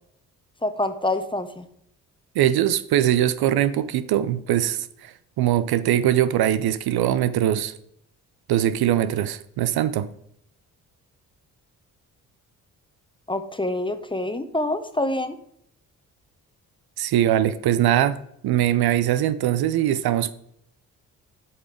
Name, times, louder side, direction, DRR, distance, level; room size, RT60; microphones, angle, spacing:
voice 1, 0.6-1.7 13.3-15.3, left 1 dB, 10° left, 1.1 m, -26 dB
voice 2, 2.3-7.7 8.5-10.1 17.0-18.2 18.4-20.3, right 11 dB, 60° right, 0.7 m, -22 dB
7.9 x 5.6 x 5.2 m
hypercardioid pair, 45°, 42 cm